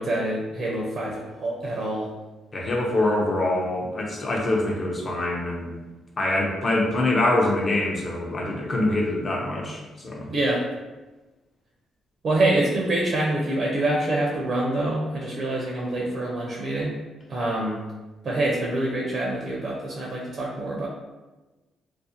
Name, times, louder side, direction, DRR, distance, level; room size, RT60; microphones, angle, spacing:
voice 1, 0.0-2.1 10.3-10.6 12.2-17.0 17.3-17.8 18.2-20.9, right 1 dB, 50° right, -3 dB, 0.5 m, -26 dB
voice 2, 2.5-5.8 6.2-10.3, left 2 dB, 40° left, -1 dB, 0.5 m, -24 dB
2.5 x 2.0 x 2.6 m, 1.2 s
cardioid pair, 90°, 0 cm